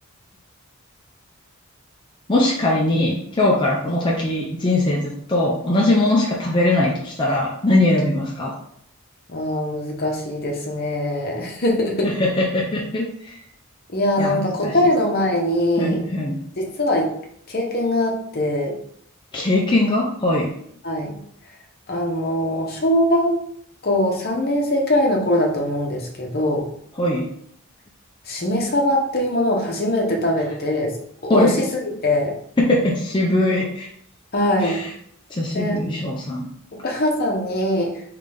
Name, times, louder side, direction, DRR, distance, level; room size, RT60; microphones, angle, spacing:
voice 1, 2.3-8.5 12.0-13.4 14.2-14.8 15.8-16.4 19.3-20.5 27.0-27.3 31.3-31.6 32.6-33.9 34.6-34.9 35.3-36.5, left 1 dB, 20° left, -3 dB, 0.5 m, -21 dB
voice 2, 9.3-12.1 13.9-16.0 16.6-17.1 17.5-18.8 20.8-21.1 21.9-23.4 23.8-26.7 28.3-31.0 31.2-32.3 34.3-34.8 35.5-35.8 36.7-38.0, left 1 dB, 45° left, 0 dB, 0.9 m, -22 dB
3.9 x 3.3 x 3.4 m, 0.67 s
head